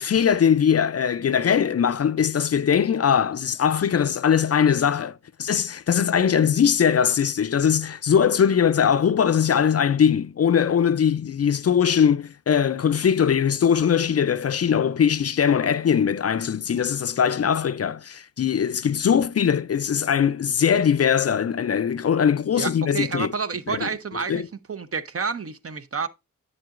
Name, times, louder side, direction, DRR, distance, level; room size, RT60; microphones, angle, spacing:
voice 1, 0.0-23.3 23.7-23.9 24.3-24.5, left 8 dB, 50° left, 0.4 m, -21 dB
voice 2, 22.6-24.4 24.7-26.1, right 5 dB, 45° right, 0.7 m, -29 dB
9.4 x 7.6 x 2.4 m
cardioid pair, 55°, 32 cm